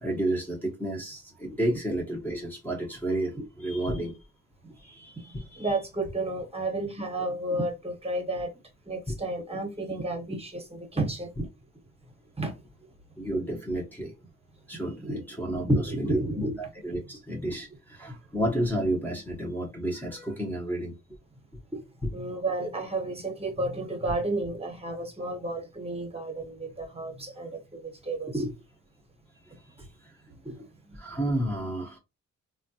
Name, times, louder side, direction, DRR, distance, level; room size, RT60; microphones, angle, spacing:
voice 1, 0.0-4.2 4.8-5.7 9.1-9.2 13.2-14.1 14.7-21.0 30.9-32.0, right 1 dB, 5° left, 0.8 m, -31 dB
voice 2, 5.6-8.5 8.9-11.3 12.4-12.6 15.0-15.2 15.5-16.5 21.7-21.8 22.1-28.5 29.8-29.9 30.4-31.0, right 2 dB, 20° right, 1.0 m, -31 dB
3.3 x 2.3 x 2.7 m
cardioid pair, 95°, 29 cm